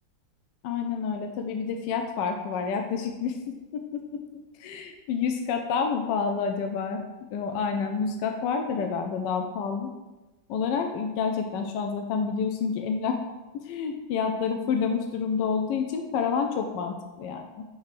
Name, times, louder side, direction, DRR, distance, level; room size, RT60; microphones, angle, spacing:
voice 1, 0.6-3.8 4.6-7.0 7.3-9.9 10.5-13.2 13.5-17.6, left 6 dB, 75° left, 4 dB, 1.2 m, -28 dB
5.5 x 3.5 x 5.8 m, 1.1 s
omnidirectional pair, 2.1 m